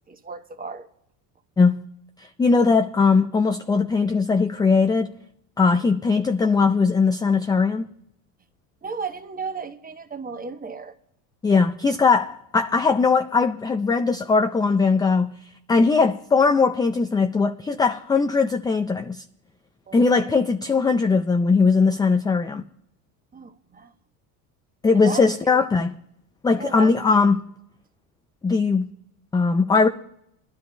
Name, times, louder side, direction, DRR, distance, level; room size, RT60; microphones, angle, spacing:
voice 1, 0.1-0.9 8.8-11.0 19.9-20.0 23.3-23.9 24.9-25.6 26.5-27.0, right 5 dB, 20° right, 0.9 m, -34 dB
voice 2, 2.4-5.1 5.6-7.9 11.4-15.3 15.7-19.2 19.9-22.6 24.8-25.9 26.4-27.4 28.4-28.9 29.3-29.9, left 4 dB, 10° left, 0.3 m, -20 dB
22.0 x 12.5 x 2.2 m
supercardioid pair, 95°, 45 cm